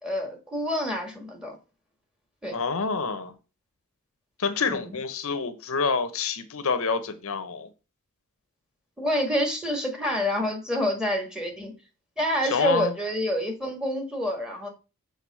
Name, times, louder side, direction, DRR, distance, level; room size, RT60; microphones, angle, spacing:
voice 1, 0.0-1.6 2.4-2.6 4.7-5.0 9.0-11.7 12.2-14.7, equal, 5° right, 2 dB, 1.8 m, -27 dB
voice 2, 2.5-3.3 4.4-7.7 12.4-12.9, left 5 dB, 65° left, 10 dB, 0.8 m, -27 dB
7.0 x 3.9 x 6.2 m, 0.31 s
head